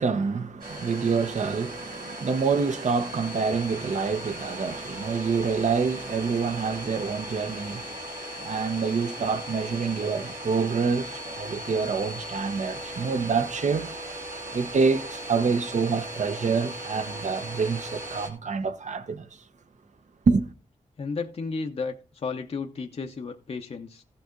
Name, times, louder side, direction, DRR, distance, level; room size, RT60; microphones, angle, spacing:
voice 1, 0.0-8.0 8.4-13.9 14.5-19.3 20.3-20.5, right 5 dB, 60° right, 1.0 m, -27 dB
Domestic sounds home sounds, 0.6-18.3, right 1 dB, 85° right, 3.0 m, -38 dB
voice 2, 21.0-24.0, left 4 dB, 50° left, 0.7 m, -33 dB
15.0 x 5.9 x 3.8 m
wide cardioid pair, 115°, 14 cm